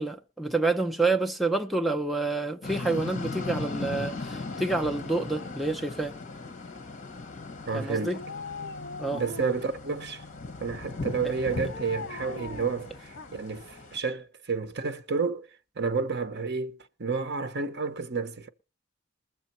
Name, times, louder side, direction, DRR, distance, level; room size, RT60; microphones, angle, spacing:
voice 1, 0.0-6.2 7.7-8.2 9.0-9.2 11.2-11.3, right 3 dB, ahead, 0.6 m, -28 dB
sound 1, 2.6-14.0, left 3 dB, 40° left, 1.3 m, -38 dB
Dog, 4.3-6.4 8.1-9.8 11.5-13.6 14.0-14.1, left 3 dB, 55° left, 1.0 m, -43 dB
voice 2, 7.7-8.2 9.1-10.2 10.6-15.5 15.8-18.5, right 4 dB, 55° right, 1.0 m, -30 dB
21.5 x 7.2 x 4.3 m
head